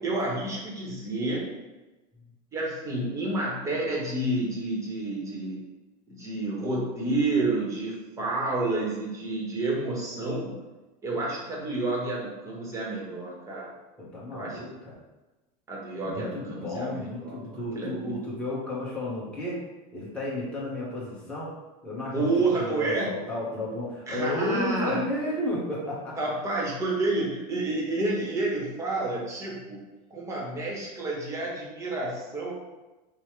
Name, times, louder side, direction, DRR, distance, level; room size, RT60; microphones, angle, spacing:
voice 1, 0.0-1.5 2.5-5.6 6.1-10.7 11.0-13.7 14.3-14.6 15.7-18.2 22.1-23.2 24.1-25.1 26.2-29.8 30.1-32.5, right 2 dB, 15° right, -3 dB, 0.9 m, -29 dB
voice 2, 14.0-14.9 16.0-19.6 19.9-21.5 21.8-22.3 22.6-26.1, left 1 dB, 5° left, -7 dB, 1.1 m, -32 dB
5.4 x 2.1 x 3.1 m, 1.1 s
supercardioid pair, 155°, 20 cm